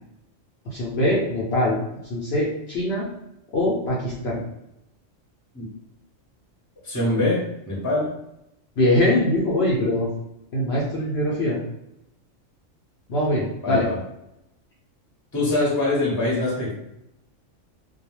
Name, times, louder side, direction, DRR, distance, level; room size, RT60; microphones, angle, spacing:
voice 1, 0.7-1.8 2.1-3.1 3.5-4.4 8.8-10.1 10.5-11.6 13.1-13.9, left 1 dB, 60° left, -6 dB, 0.8 m, -22 dB
voice 2, 6.8-8.1 13.6-14.0 15.3-16.7, left 2 dB, 15° left, -5 dB, 0.7 m, -23 dB
2.3 x 2.2 x 3.0 m, 0.84 s
omnidirectional pair, 1.4 m